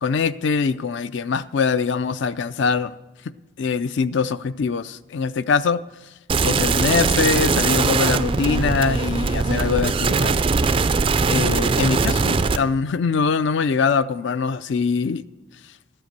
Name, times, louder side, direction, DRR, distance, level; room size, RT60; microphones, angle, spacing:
voice 1, 0.0-2.9 3.6-5.8 6.4-10.3 11.3-15.2, left 5 dB, 55° left, 0.4 m, -23 dB
sound 1, 6.3-12.6, right 4 dB, 25° right, 0.3 m, -20 dB
13.0 x 7.8 x 6.7 m
head